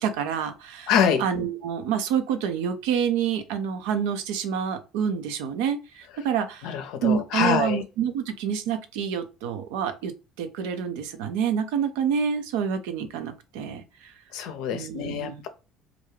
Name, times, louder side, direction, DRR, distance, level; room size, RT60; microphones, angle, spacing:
voice 1, 0.0-0.9 1.2-6.7 7.0-10.1 10.4-14.1 14.7-15.4, right 8 dB, 75° right, 0.5 m, -27 dB
voice 2, 0.9-1.2 6.6-7.8 14.3-15.5, left 8 dB, 70° left, 0.5 m, -25 dB
2.4 x 2.3 x 3.2 m
hypercardioid pair, 65°, 0 cm